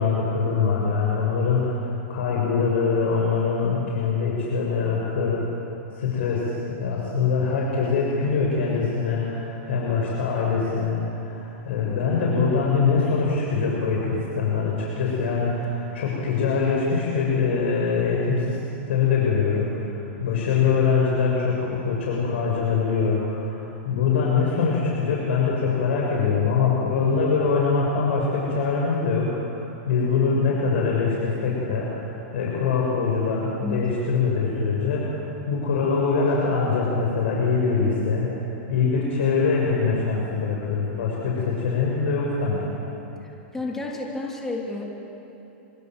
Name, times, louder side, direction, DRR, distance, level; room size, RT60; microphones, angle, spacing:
voice 1, 0.0-5.4 5.9-18.6 18.9-19.9 20.2-29.6 29.8-38.3 38.7-42.6, left 5 dB, 70° left, -3 dB, 6.8 m, -23 dB
voice 2, 43.2-44.8, left 3 dB, 5° left, -2 dB, 2.8 m, -31 dB
27.5 x 27.5 x 7.8 m, 3.0 s
supercardioid pair, 165°, 6 cm